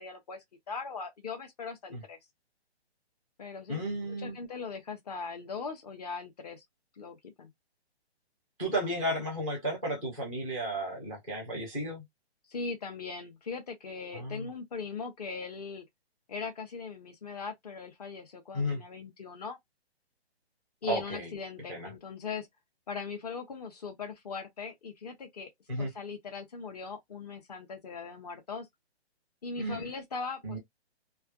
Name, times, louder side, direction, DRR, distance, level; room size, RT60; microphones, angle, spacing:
voice 1, 0.0-2.2 3.4-6.6 7.0-7.5 12.5-15.8 16.3-19.6 20.8-22.5 22.9-25.5 25.8-28.7 29.4-30.6, left 5 dB, 35° left, 0.8 m, -40 dB
voice 2, 3.7-4.4 8.6-12.0 14.1-14.5 18.5-18.8 20.9-21.3 21.7-21.9 25.7-25.9 29.6-29.9 30.4-30.6, right 1 dB, 5° left, 0.4 m, -33 dB
3.3 x 2.3 x 2.2 m
figure-of-eight pair, 130°, 33 cm